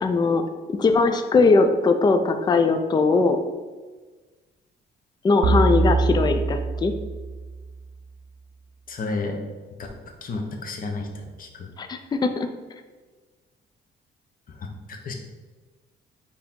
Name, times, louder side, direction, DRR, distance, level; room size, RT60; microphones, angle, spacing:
voice 1, 0.0-0.4 0.7-3.4 5.2-6.9 11.8-12.5, left 3 dB, 20° left, 7 dB, 0.4 m, -20 dB
sound 1, 5.4-7.9, right 3 dB, 85° right, 0.5 m, -24 dB
voice 2, 8.9-9.4 9.8-9.9 10.2-11.7 14.9-15.1, left 3 dB, 45° left, 3 dB, 0.8 m, -31 dB
4.5 x 2.8 x 3.6 m, 1.3 s
cardioid pair, 90°, 20 cm